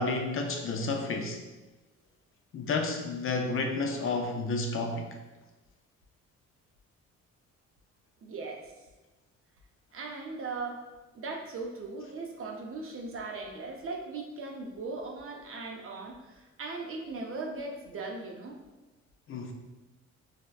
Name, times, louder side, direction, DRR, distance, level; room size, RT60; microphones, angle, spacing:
voice 1, 0.0-1.4 2.5-5.0 19.3-19.5, left 3 dB, 45° left, 3 dB, 0.4 m, -31 dB
voice 2, 8.2-8.7 9.9-10.9 11.1-18.6, right 3 dB, 45° right, 1 dB, 0.6 m, -38 dB
4.2 x 2.1 x 2.3 m, 1.1 s
cardioid pair, 90°, 30 cm